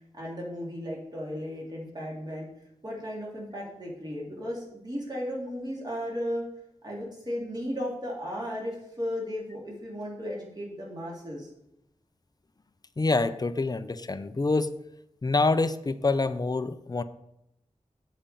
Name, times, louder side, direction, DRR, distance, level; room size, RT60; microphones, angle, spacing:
voice 1, 0.1-2.5 2.8-6.4 6.8-11.5, equal, 35° right, -4 dB, 2.9 m, -35 dB
voice 2, 13.0-14.7 15.2-17.0, left 3 dB, 30° left, 11 dB, 0.5 m, -26 dB
7.3 x 5.1 x 6.8 m, 0.82 s
wide cardioid pair, 85°, 12 cm